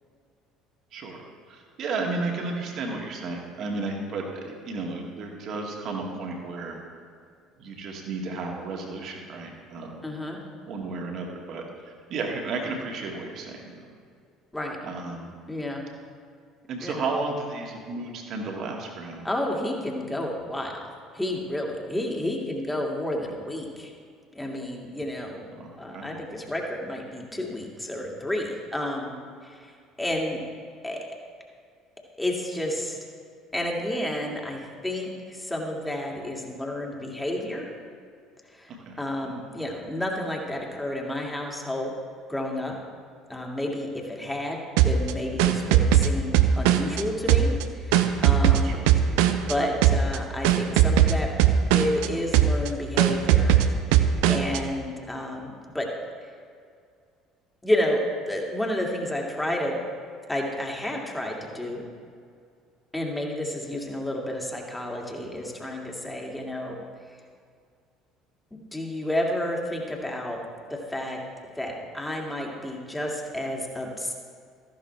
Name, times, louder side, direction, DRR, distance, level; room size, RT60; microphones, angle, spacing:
voice 1, 0.9-1.2 1.5-6.8 7.6-10.0 10.7-11.6 12.1-13.8 14.8-15.3 16.7-19.2 25.6-26.1 38.7-39.0 39.2-39.3 48.6-48.9 49.2-49.3, right 3 dB, 50° right, 1 dB, 2.0 m, -33 dB
voice 2, 10.0-10.4 14.5-14.8 15.5-15.8 16.8-17.0 19.2-23.9 24.3-25.4 25.8-29.2 29.4-29.7 30.0-30.4 30.8-31.0 32.2-33.0 33.5-37.7 38.5-41.9 42.3-42.8 43.3-44.6 44.8-48.7 49.5-51.3 51.7-53.6 54.3-55.9 56.2-56.3 57.6-58.0 58.3-59.8 60.3-61.8 62.9-66.8 68.5-70.4 70.7-71.2 71.6-74.1, left 1 dB, 10° left, -1 dB, 2.3 m, -30 dB
sound 1, 44.8-47.0 47.3-49.5 49.8-50.2 50.4-52.1 52.3-52.7 53.0-54.6, right 10 dB, 65° right, 0.5 m, -19 dB
14.0 x 11.0 x 3.4 m, 2.2 s
figure-of-eight pair, 60°, 0 cm